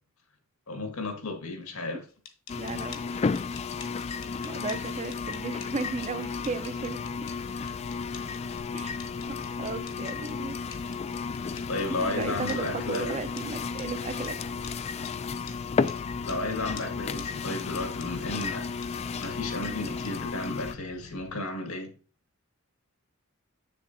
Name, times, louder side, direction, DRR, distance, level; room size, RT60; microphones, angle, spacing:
voice 1, 0.7-2.0 11.7-13.1 16.2-18.7 19.2-21.9, left 2 dB, 85° left, 1.9 m, -33 dB
sound 1, 2.1-12.6 12.9-13.0 13.4-13.5 13.8-13.9 14.2-14.3 14.6-14.7 15.1-15.2 15.5-15.6 15.9-16.0 16.3-16.4 16.8-16.9 17.2-17.3 17.6-17.7 18.0-18.1 18.4-18.5 18.8-18.9 19.2-19.3 19.6-19.7 20.0-20.1 20.4-20.5, left 7 dB, 60° left, 1.2 m, -46 dB
sound 2, 2.5-20.8, left 5 dB, 30° left, 0.3 m, -33 dB
voice 2, 2.6-3.0 4.4-7.0 8.7-9.0 9.6-10.6 11.9-14.4, right 3 dB, 30° right, 0.6 m, -35 dB
sound 3, 6.6-21.4, left 3 dB, 45° left, 0.7 m, -50 dB
7.9 x 6.8 x 2.7 m
head